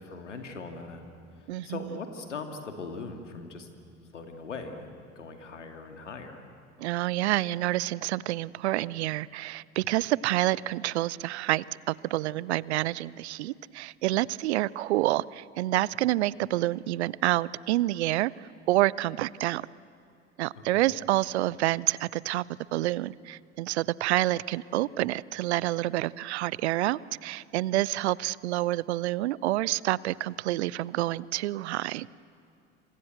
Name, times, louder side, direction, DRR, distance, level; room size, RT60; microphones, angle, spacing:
voice 1, 0.0-3.7 4.1-6.4 20.5-20.9, left 4 dB, 80° left, 5 dB, 2.5 m, -40 dB
voice 2, 1.5-1.8 6.8-19.6 20.4-22.4 22.7-32.1, right 16 dB, 65° right, 23 dB, 0.6 m, -28 dB
27.5 x 26.0 x 7.9 m, 2.4 s
figure-of-eight pair, 65°, 36 cm